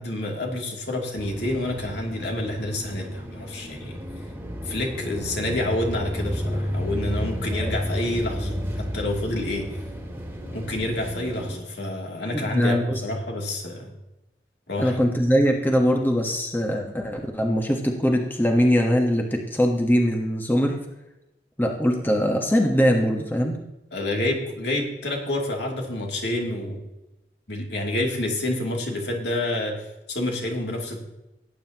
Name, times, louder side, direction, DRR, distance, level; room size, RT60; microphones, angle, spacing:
voice 1, 0.0-4.0 4.6-9.7 10.5-13.9 14.7-15.0 23.9-26.8 27.5-31.0, left 1 dB, 70° left, 0 dB, 2.8 m, -28 dB
sound 1, 1.2-11.6, equal, 15° right, 2.0 m, -32 dB
voice 2, 12.3-13.0 14.8-20.8 21.6-23.6, equal, 10° left, 1 dB, 1.2 m, -22 dB
18.0 x 9.3 x 2.9 m, 0.96 s
head